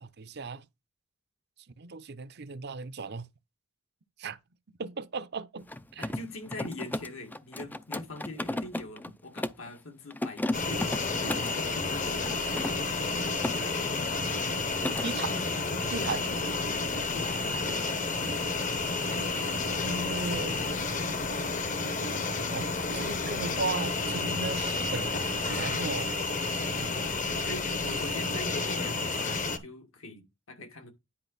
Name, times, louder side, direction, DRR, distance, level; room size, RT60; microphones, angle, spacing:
voice 1, 0.0-0.6 1.8-3.3 4.2-4.4 4.8-6.1 15.0-15.4 15.8-16.3 19.8-20.7 22.5-22.7 22.9-25.1 25.5-26.1, right 3 dB, 50° right, 0.6 m, -36 dB
Mechanisms, 5.6-9.7 10.1-11.6 12.2-13.6 13.9-14.2 14.5-15.1, left 1 dB, 10° left, 0.4 m, -35 dB
voice 2, 6.0-12.7 16.8-18.0 19.1-19.5 26.8-31.0, left 2 dB, 80° left, 2.1 m, -43 dB
sound 1, 10.5-29.6, left 3 dB, 40° left, 0.9 m, -31 dB
10.0 x 4.9 x 4.0 m
head